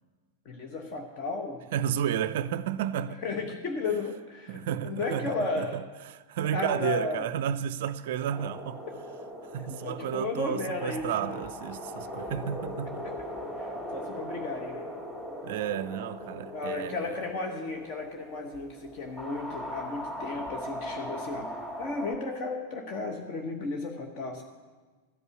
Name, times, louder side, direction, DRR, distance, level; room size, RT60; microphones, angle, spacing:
voice 1, 0.4-1.6 3.2-5.8 6.5-7.2 9.7-11.4 13.0-13.2 13.6-14.9 16.5-21.5 21.8-24.4, left 3 dB, 40° left, 1.0 m, -34 dB
voice 2, 1.7-3.2 4.5-5.8 6.1-8.8 9.5-13.1 15.4-17.2, right 10 dB, 55° right, 0.4 m, -32 dB
sound 1, 8.3-22.1, equal, 10° left, 2.7 m, -40 dB
13.5 x 5.4 x 8.0 m
figure-of-eight pair, 90°, 0 cm